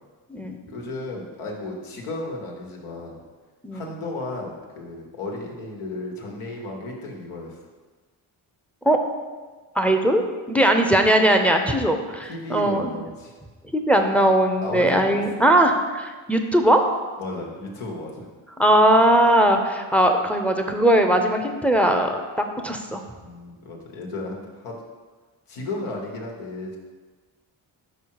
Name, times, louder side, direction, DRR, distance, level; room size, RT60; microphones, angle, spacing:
voice 1, 0.7-3.2 3.7-7.6 12.3-13.3 14.6-15.2 17.2-18.3 23.2-24.8 25.5-26.8, left 2 dB, 80° left, 0 dB, 1.3 m, -34 dB
voice 2, 9.8-10.2 10.5-12.9 13.7-16.8 18.6-22.2 22.6-23.0, right 1 dB, 5° left, 5 dB, 0.7 m, -19 dB
5.1 x 4.7 x 4.7 m, 1.4 s
supercardioid pair, 50°, 49 cm